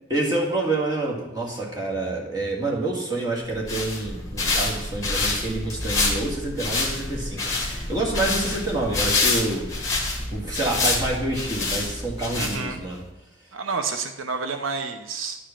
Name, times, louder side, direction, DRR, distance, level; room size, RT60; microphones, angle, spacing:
voice 1, 0.1-10.0 10.3-13.0, right 2 dB, 20° right, -3 dB, 1.8 m, -27 dB
sound 1, 3.4-12.9, left 3 dB, 15° left, 1.6 m, -27 dB
voice 2, 12.3-12.8 13.5-15.4, right 4 dB, 80° right, 7 dB, 0.7 m, -29 dB
10.5 x 5.0 x 5.8 m, 0.99 s
head